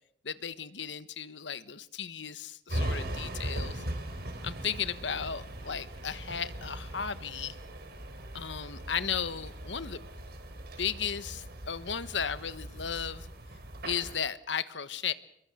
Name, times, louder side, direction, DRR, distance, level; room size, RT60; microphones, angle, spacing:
voice 1, 0.2-3.8 4.4-7.5 8.3-10.0 10.8-13.3 13.8-15.1, left 7 dB, 80° left, 14 dB, 1.3 m, -35 dB
sound 1, 2.7-14.2, right 1 dB, 60° right, 4.4 m, -39 dB
27.5 x 22.0 x 7.8 m, 0.75 s
head